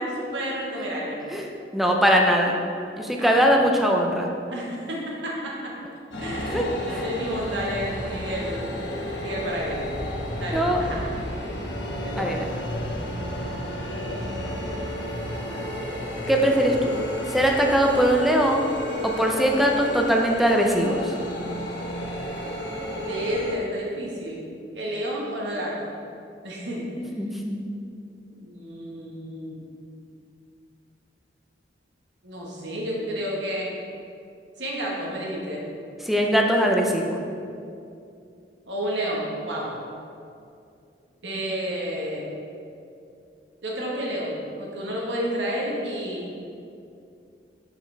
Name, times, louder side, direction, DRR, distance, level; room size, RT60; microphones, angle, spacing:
voice 1, 0.0-1.2 3.2-3.4 4.5-5.7 6.2-8.7 9.2-9.9 10.4-11.0 12.0-12.3 23.0-24.4 24.7-25.9 26.4-26.8 28.3-29.6 32.2-33.7 34.6-35.6 38.7-39.7 41.2-42.3 43.6-46.3, equal, 75° right, -3 dB, 1.4 m, -31 dB
voice 2, 1.3-2.6 3.0-4.3 6.5-7.0 10.5-10.9 12.2-12.4 16.3-16.9 17.3-18.7 19.0-21.1 26.9-27.6 36.0-37.2, equal, ahead, 0 dB, 0.5 m, -21 dB
sound 1, 6.1-23.5, left 1 dB, 75° left, 1.0 m, -32 dB
6.5 x 5.8 x 3.4 m, 2.5 s
head